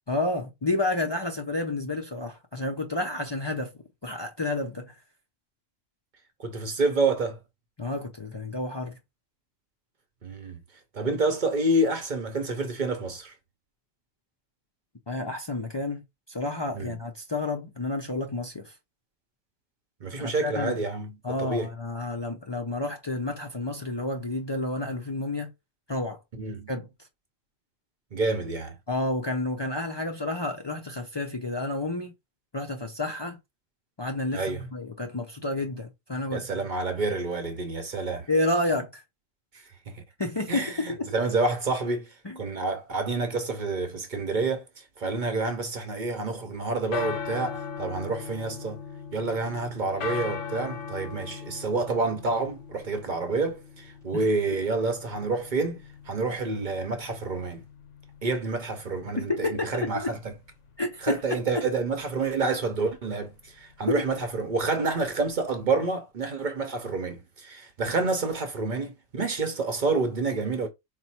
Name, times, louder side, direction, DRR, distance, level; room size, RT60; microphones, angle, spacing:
voice 1, 0.1-3.7 4.0-4.9 7.8-9.0 15.1-16.0 16.3-18.7 20.2-20.8 21.2-25.5 25.9-26.2 26.7-26.9 28.9-32.1 32.5-33.4 34.0-36.5 38.3-39.0 40.2-41.1 42.2-42.4 54.1-54.3 59.2-60.1 60.8-61.2 63.9-64.0, left 2 dB, 45° left, 0.3 m, -30 dB
voice 2, 6.4-7.4 10.2-10.6 10.9-13.3 16.7-17.0 20.0-21.7 26.4-26.7 28.1-28.8 34.3-34.6 36.3-38.3 39.9-40.0 40.5-48.8 49.1-57.6 58.2-60.3 61.0-70.7, right 3 dB, 50° right, 0.7 m, -28 dB
sound 1, 46.5-65.6, left 6 dB, 70° left, 1.1 m, -40 dB
4.3 x 2.1 x 4.2 m
omnidirectional pair, 1.3 m